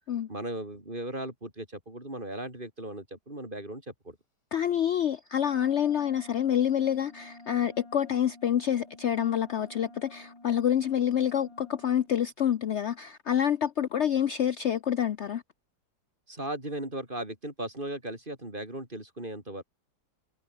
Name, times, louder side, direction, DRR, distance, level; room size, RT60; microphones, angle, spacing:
voice 1, 0.3-4.2 16.3-19.6, right 1 dB, 25° right, 6.0 m, -37 dB
voice 2, 4.5-15.4, left 9 dB, 70° left, 0.6 m, -27 dB
Wind instrument woodwind instrument, 5.3-12.1, left 2 dB, 15° left, 2.3 m, -51 dB
omnidirectional pair, 2.1 m